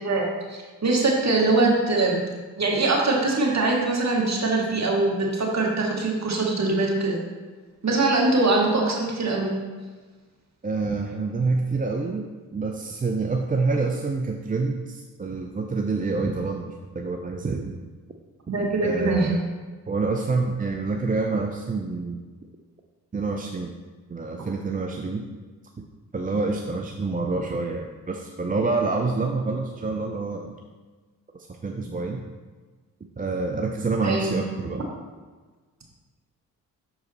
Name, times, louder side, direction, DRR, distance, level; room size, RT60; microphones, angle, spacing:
voice 1, 0.0-2.2 2.6-7.2 7.8-9.5 18.5-19.4 34.0-34.4, right 2 dB, 40° right, -1 dB, 1.9 m, -22 dB
voice 2, 10.6-17.8 18.8-19.4 19.9-22.2 23.1-23.7 24.1-25.2 26.1-30.6 31.3-32.2 33.2-34.9, right 3 dB, 20° right, 3 dB, 0.6 m, -27 dB
6.4 x 4.8 x 4.2 m, 1.4 s
hypercardioid pair, 40°, 44 cm